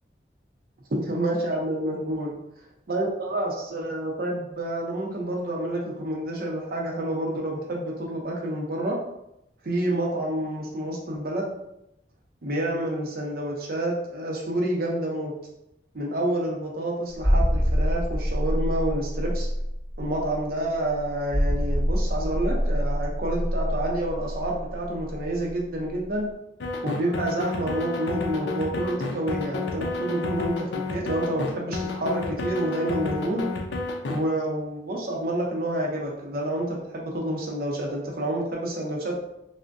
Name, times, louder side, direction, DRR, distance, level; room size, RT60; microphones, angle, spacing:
voice 1, 0.9-2.4 2.9-9.0 9.6-11.5 12.4-15.3 15.9-19.5 20.0-26.3 26.8-33.4 34.1-39.1, right 1 dB, 55° right, -1 dB, 0.6 m, -28 dB
sound 1, 17.2-25.6 25.9-26.0, equal, 5° right, 1.1 m, -25 dB
sound 2, 26.6-34.2, left 3 dB, 75° left, 0.4 m, -30 dB
3.3 x 2.1 x 2.5 m, 0.83 s
head